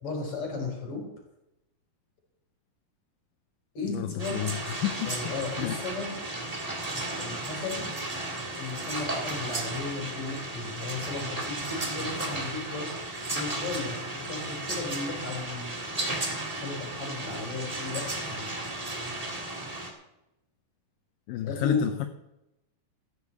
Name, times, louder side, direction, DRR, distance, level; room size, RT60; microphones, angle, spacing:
voice 1, 0.0-1.0 3.7-4.4 5.0-6.1 7.2-7.8 8.6-12.9 13.3-15.7 16.5-18.5 21.4-21.9, left 3 dB, 40° left, 1 dB, 4.6 m, -35 dB
voice 2, 3.9-5.8 21.3-22.1, left 11 dB, 80° left, 8 dB, 2.3 m, -31 dB
sound 1, 4.2-19.9, right 2 dB, 15° right, 1.6 m, -34 dB
15.0 x 6.5 x 8.3 m, 0.91 s
omnidirectional pair, 4.1 m